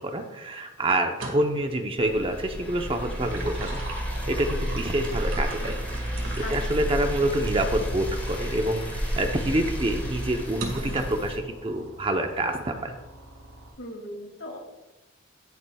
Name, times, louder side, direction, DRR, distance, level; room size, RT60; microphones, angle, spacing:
voice 1, 0.0-6.1 6.5-12.9, right 1 dB, 25° right, 4 dB, 0.8 m, -27 dB
sound 1, 1.1-1.7 3.0-7.9 8.5-8.6 10.6-11.3, right 2 dB, 75° right, 1.9 m, -39 dB
sound 2, 2.0-11.4, equal, 10° left, 2.2 m, -31 dB
sound 3, 2.6-13.7, right 1 dB, 90° right, 3.3 m, -48 dB
voice 2, 6.4-6.8 13.8-14.6, left 1 dB, 75° left, 1 dB, 2.6 m, -38 dB
18.5 x 7.0 x 2.3 m, 1.0 s
head